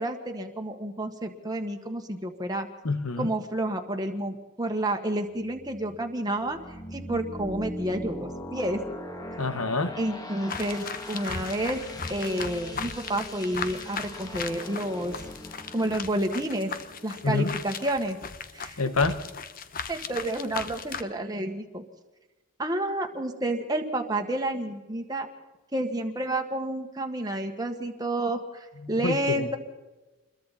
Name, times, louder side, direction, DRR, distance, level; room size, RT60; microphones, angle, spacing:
voice 1, 0.0-2.7 3.2-6.6 6.9-8.8 10.0-11.8 12.1-15.1 15.7-16.7 17.0-18.2 18.5-18.8 19.9-21.8 22.6-25.3 25.7-29.6, right 1 dB, 20° right, 3 dB, 1.6 m, -30 dB
voice 2, 2.8-3.3 9.4-9.9 17.2-17.5 18.8-19.2 28.8-29.6, left 3 dB, 80° left, 10 dB, 1.5 m, -27 dB
sound 1, 5.4-18.0, equal, 15° left, 1.8 m, -41 dB
sound 2, 10.5-21.0, left 5 dB, 40° left, 1.1 m, -37 dB
27.5 x 22.0 x 4.3 m, 1.1 s
head